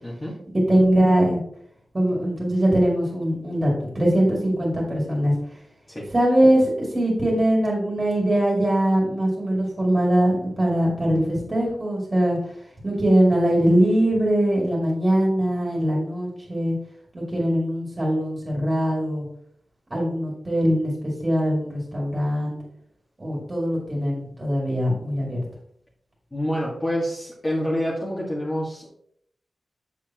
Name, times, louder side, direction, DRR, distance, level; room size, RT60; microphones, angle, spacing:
voice 1, 0.0-0.4 5.9-6.1 26.3-28.9, equal, 20° left, -6 dB, 1.7 m, -27 dB
voice 2, 0.7-1.4 1.9-5.4 6.1-12.4 12.8-16.7 17.1-19.3 19.9-20.9 21.2-22.6 23.2-25.4, right 1 dB, 25° right, -3 dB, 2.4 m, -21 dB
7.1 x 6.8 x 3.0 m, 0.69 s
wide cardioid pair, 105°, 0 cm